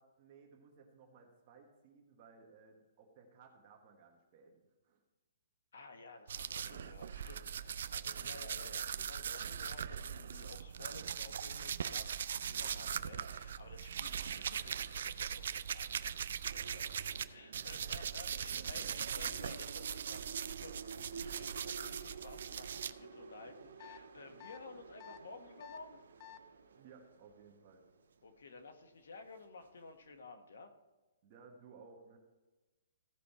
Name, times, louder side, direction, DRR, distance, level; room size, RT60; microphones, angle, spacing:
voice 1, 0.0-4.6 4.8-5.0 17.6-18.0 18.5-18.9 26.7-27.8 31.2-32.2, right 5 dB, 30° right, 1 dB, 1.3 m, -59 dB
voice 2, 5.7-26.0 28.2-30.7, left 3 dB, 75° left, 7 dB, 1.4 m, -54 dB
sound 1, 6.3-17.2 17.5-22.9, right 8 dB, 60° right, 0.4 m, -40 dB
sound 2, 16.4-30.1, right 5 dB, 85° right, 1.2 m, -52 dB
sound 3, 23.8-24.0 24.4-24.6 25.0-25.2 25.6-25.8 26.2-26.4, left 13 dB, 25° left, 0.4 m, -51 dB
15.5 x 5.2 x 4.3 m, 1.2 s
hypercardioid pair, 170°, 0 cm